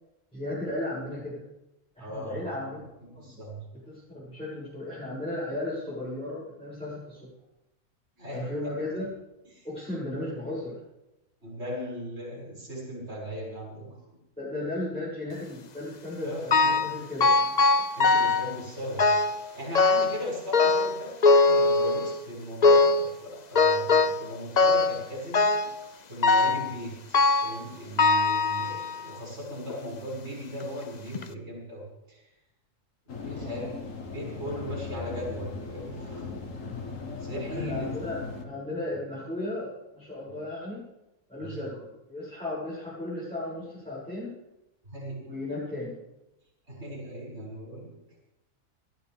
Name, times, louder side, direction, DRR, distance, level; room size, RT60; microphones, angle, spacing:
voice 1, 0.3-1.4 1.9-2.8 3.1-3.4 3.9-7.2 8.3-9.1 9.6-10.8 14.4-17.5 33.4-33.5 37.5-40.8 41.3-44.3 45.0-46.0, left 1 dB, 5° left, -10 dB, 7.6 m, -35 dB
voice 2, 2.0-2.3 2.7-3.6 8.2-8.7 9.5-9.7 11.4-14.0 16.2-17.0 18.0-25.8 26.1-32.3 33.2-36.6 37.2-37.9 40.3-40.4 41.4-41.7 44.8-45.4 46.7-47.9, equal, 55° right, -6 dB, 7.5 m, -38 dB
sound 1, 16.5-17.0 17.2-18.5 19.0-19.4 19.8-20.2 20.5-22.2 22.6-23.1 23.6-24.3 24.6-25.0 25.3-25.8 26.2-26.7 27.1-27.6 28.0-29.1 29.7-29.8 30.6-30.7 31.2-31.3, left 3 dB, 40° left, 0.7 m, -21 dB
sound 2, 33.1-38.5, left 4 dB, 70° left, 1.9 m, -38 dB
28.5 x 11.5 x 3.7 m, 0.92 s
omnidirectional pair, 1.4 m